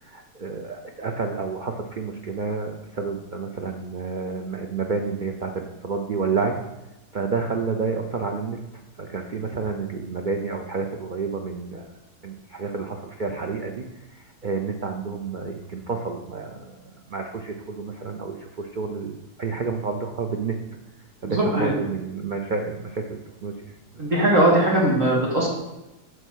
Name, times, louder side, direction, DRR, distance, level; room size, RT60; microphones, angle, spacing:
voice 1, 0.0-6.5 7.1-8.6 9.0-11.9 12.2-20.5 21.2-23.7, right 4 dB, 80° right, 3 dB, 0.4 m, -30 dB
voice 2, 21.2-21.8 24.0-25.5, right 1 dB, 55° right, -4 dB, 2.0 m, -20 dB
9.4 x 3.3 x 6.2 m, 0.99 s
omnidirectional pair, 1.7 m